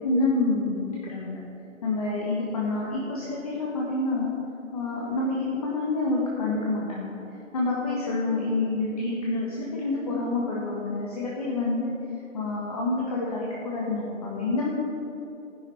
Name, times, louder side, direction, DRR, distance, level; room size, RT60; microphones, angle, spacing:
voice 1, 0.0-1.4 1.8-4.3 4.7-7.1 7.5-11.9 12.3-14.7, left 2 dB, 25° left, -4 dB, 1.5 m, -27 dB
13.0 x 10.5 x 5.8 m, 3.0 s
hypercardioid pair, 170°, 41 cm